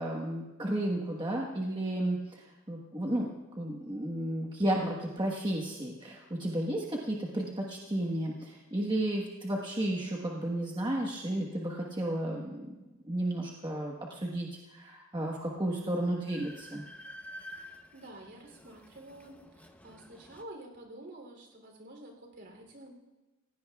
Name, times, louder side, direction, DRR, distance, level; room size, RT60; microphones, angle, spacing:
voice 1, 0.0-3.3 3.6-12.7 13.0-16.8, right 1 dB, 20° right, -2 dB, 1.3 m, -33 dB
Train, 15.5-15.6 15.9-20.4, left 1 dB, 5° left, 0.7 m, -50 dB
voice 2, 17.6-23.0, right 1 dB, 50° right, 2 dB, 3.2 m, -49 dB
28.5 x 16.5 x 2.4 m, 1.1 s
head